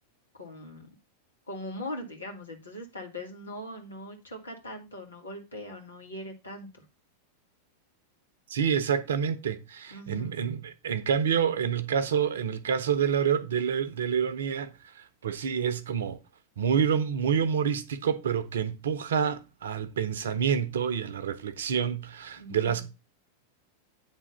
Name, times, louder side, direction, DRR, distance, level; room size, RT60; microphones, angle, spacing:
voice 1, 0.4-0.9 1.5-6.8 9.9-10.4 22.4-22.9, left 1 dB, 75° left, 2.1 m, -41 dB
voice 2, 8.5-16.2 16.6-22.9, right 7 dB, 65° right, 0.7 m, -28 dB
9.0 x 3.7 x 5.5 m
figure-of-eight pair, 90°, 0 cm